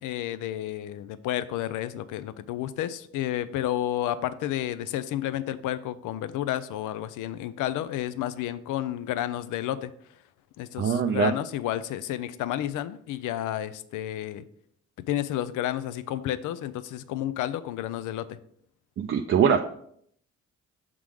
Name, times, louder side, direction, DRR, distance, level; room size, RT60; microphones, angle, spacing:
voice 1, 0.0-9.9 10.6-14.4 15.1-18.4, left 12 dB, 80° left, 14 dB, 0.5 m, -31 dB
voice 2, 10.8-11.3 19.0-19.6, right 7 dB, 45° right, 4 dB, 0.5 m, -22 dB
6.1 x 3.7 x 4.8 m, 0.67 s
cardioid pair, 90°, 30 cm